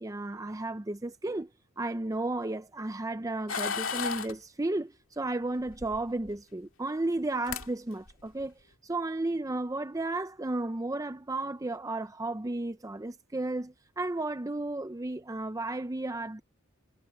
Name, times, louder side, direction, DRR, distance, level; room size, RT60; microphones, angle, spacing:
voice 1, 0.0-1.5 1.8-8.5 8.8-16.4, right 2 dB, 15° right, 0.5 m, -33 dB
sound 1, 3.5-4.3 5.7-6.4 7.2-7.3 7.5-7.7 8.1-8.4, left 6 dB, 75° left, 2.2 m, -34 dB
head